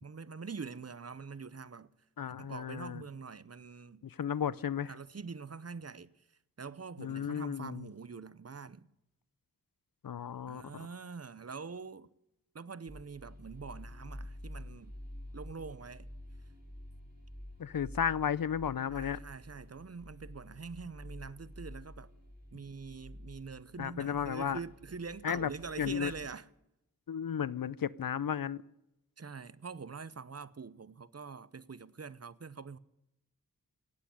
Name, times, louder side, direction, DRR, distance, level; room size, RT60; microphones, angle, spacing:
voice 1, 0.0-1.9 2.4-4.1 4.9-6.1 6.6-8.9 10.5-12.1 12.5-15.0 15.3-16.1 18.9-22.1 22.5-26.4 29.2-32.8, right 5 dB, 45° right, 0.7 m, -44 dB
voice 2, 2.2-3.0 4.0-4.9 7.0-7.9 10.0-10.6 17.6-19.2 23.8-24.6 25.2-25.5 25.8-26.1 27.1-28.6, left 8 dB, 75° left, 0.6 m, -34 dB
sound 1, 12.9-26.3, left 1 dB, 30° right, 6.9 m, -49 dB
17.0 x 8.5 x 9.9 m
wide cardioid pair, 65°, 34 cm